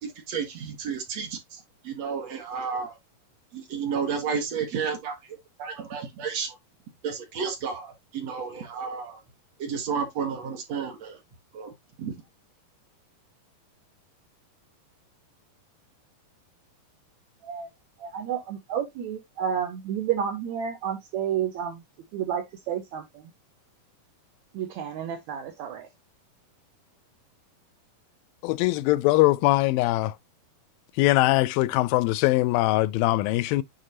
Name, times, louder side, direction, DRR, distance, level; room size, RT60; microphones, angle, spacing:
voice 1, 0.0-3.0 3.5-6.6 7.0-9.2 9.6-11.2 11.5-11.7 12.0-12.1, right 6 dB, 55° right, 2.3 m, -32 dB
voice 2, 18.0-21.8 22.1-23.0 24.5-25.9, right 8 dB, 75° right, 1.8 m, -30 dB
voice 3, 28.4-30.1 31.0-33.6, left 18 dB, 90° left, 2.3 m, -22 dB
9.2 x 3.8 x 2.8 m
omnidirectional pair, 4.0 m